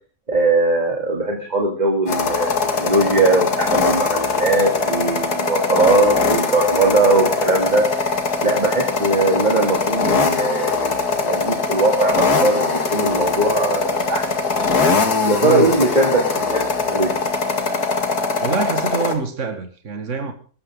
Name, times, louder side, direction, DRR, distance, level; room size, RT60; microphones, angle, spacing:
voice 1, 0.3-2.5 2.8-8.2 8.4-10.9 11.2-14.3 15.2-17.1, right 2 dB, 25° right, -1 dB, 3.0 m, -20 dB
sound 1, 2.1-19.1, left 4 dB, 80° left, 2.6 m, -21 dB
voice 2, 18.4-20.3, right 4 dB, 50° right, 6 dB, 2.2 m, -25 dB
21.0 x 13.0 x 3.8 m, 0.41 s
omnidirectional pair, 1.6 m